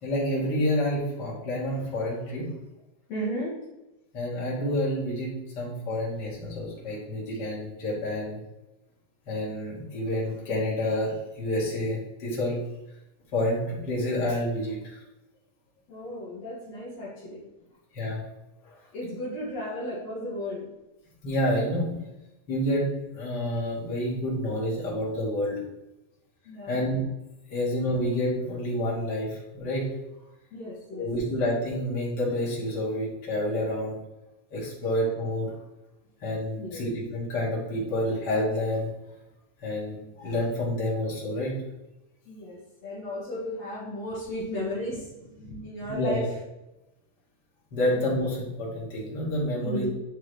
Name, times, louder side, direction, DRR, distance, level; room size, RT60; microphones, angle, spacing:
voice 1, 0.0-2.5 4.1-8.4 9.3-12.6 13.3-15.0 17.9-18.2 18.6-18.7 21.2-22.0 22.5-25.6 26.7-27.0 27.5-29.9 31.0-34.0 34.5-35.5 36.2-38.9 39.6-41.6 45.9-46.3 47.7-49.9, left 1 dB, 35° left, -5 dB, 2.5 m, -28 dB
voice 2, 3.1-3.6 15.9-17.4 18.9-20.7 26.5-26.8 30.5-31.1 36.6-36.8 39.9-40.1 42.3-46.3 47.9-48.0 49.6-49.9, equal, 60° left, -6 dB, 2.6 m, -35 dB
9.8 x 4.5 x 3.3 m, 0.97 s
omnidirectional pair, 3.5 m